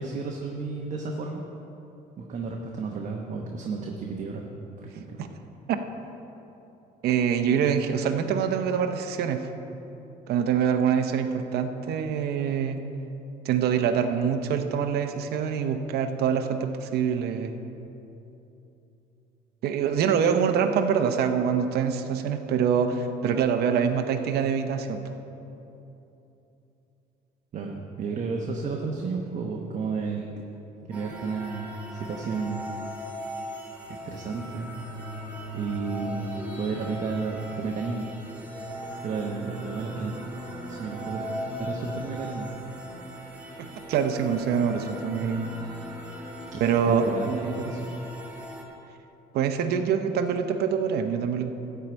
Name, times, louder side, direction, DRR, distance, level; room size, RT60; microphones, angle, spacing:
voice 1, 0.0-1.4 2.2-4.5 4.8-5.2 27.5-30.3 30.9-32.7 33.9-34.7 35.5-38.1 39.0-40.1 40.7-41.3 41.6-42.5 46.5-47.9, right 4 dB, 45° right, 1 dB, 1.0 m, -32 dB
voice 2, 7.0-9.5 10.3-12.8 13.4-17.5 19.6-25.1 43.6-45.5 46.6-47.1 49.3-51.5, right 7 dB, 70° right, 6 dB, 0.8 m, -25 dB
sound 1, 30.9-48.6, equal, 10° right, 1.7 m, -38 dB
13.0 x 4.7 x 8.7 m, 3.0 s
cardioid pair, 110°, 17 cm